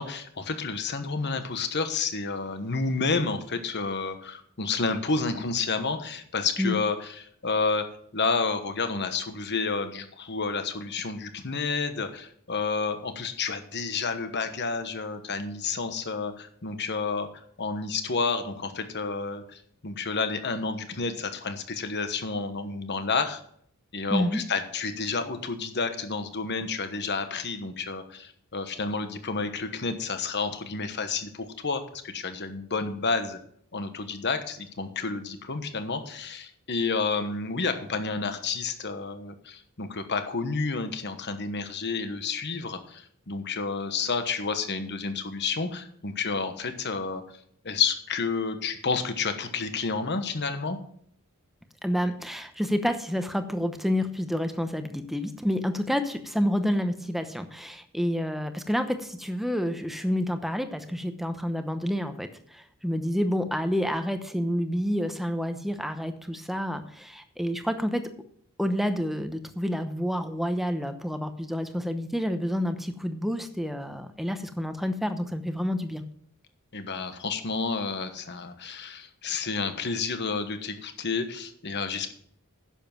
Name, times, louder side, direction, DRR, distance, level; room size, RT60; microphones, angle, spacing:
voice 1, 0.0-7.9 8.1-17.3 17.6-23.4 23.9-33.4 33.7-47.4 47.6-50.8 76.7-82.1, left 4 dB, 50° left, 8 dB, 1.2 m, -30 dB
voice 2, 24.1-24.4 51.8-68.1 68.6-76.0, equal, ahead, 8 dB, 0.9 m, -29 dB
10.5 x 7.2 x 5.9 m, 0.63 s
head